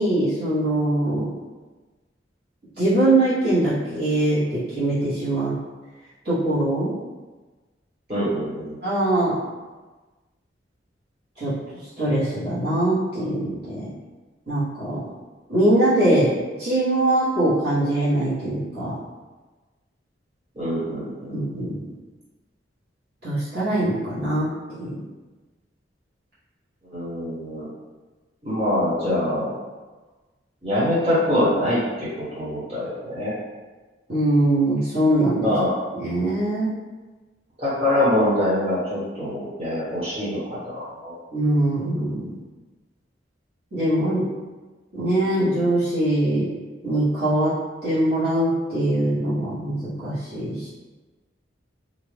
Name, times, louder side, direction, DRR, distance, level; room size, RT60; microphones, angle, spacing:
voice 1, 0.0-1.3 2.8-5.5 6.2-6.9 8.8-9.4 11.4-11.5 11.8-13.9 14.5-15.0 15.5-16.3 16.6-19.0 21.3-21.8 23.2-24.5 24.8-25.0 34.1-35.5 35.9-36.7 41.3-42.4 43.7-44.3 44.9-46.5 46.8-50.7, right 1 dB, 60° right, -13 dB, 1.2 m, -22 dB
voice 2, 8.1-8.7 20.5-21.7 26.9-27.6 28.4-29.5 30.6-33.3 35.4-35.7 37.6-41.2, left 1 dB, 35° right, -11 dB, 1.4 m, -24 dB
2.6 x 2.4 x 3.2 m, 1.3 s
head